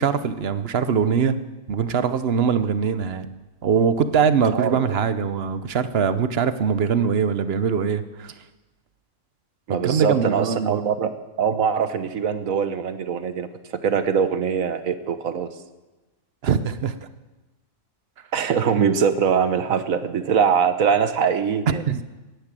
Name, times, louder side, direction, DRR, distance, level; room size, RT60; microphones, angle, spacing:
voice 1, 0.0-3.3 3.6-8.3 9.7-10.9 16.4-17.0 21.7-22.0, right 6 dB, 50° right, 12 dB, 1.0 m, -22 dB
voice 2, 9.7-13.5 13.8-15.5 18.3-21.8, right 7 dB, 75° right, 11 dB, 1.4 m, -22 dB
18.0 x 10.5 x 7.6 m, 1.1 s
omnidirectional pair, 1.4 m